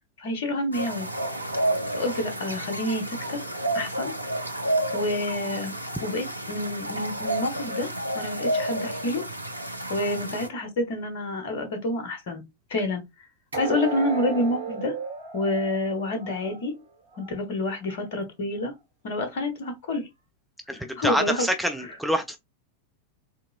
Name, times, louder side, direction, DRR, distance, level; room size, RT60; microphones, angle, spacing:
voice 1, 0.2-1.1 1.9-3.5 3.7-4.1 4.9-5.7 6.0-9.2 9.9-12.4 12.7-13.0 13.6-14.9 15.3-16.7 17.2-18.7 19.0-20.1 20.9-21.5, left 1 dB, 55° left, 1.2 m, -28 dB
sound 1, 0.7-10.5, right 1 dB, 85° right, 0.4 m, -30 dB
sound 2, 1.1-4.2 13.5-17.4 17.8-18.0 18.6-18.7, right 5 dB, 70° right, 1.1 m, -37 dB
voice 2, 20.7-22.4, equal, ahead, 0.4 m, -26 dB
3.6 x 2.7 x 2.3 m
figure-of-eight pair, 90°, 0 cm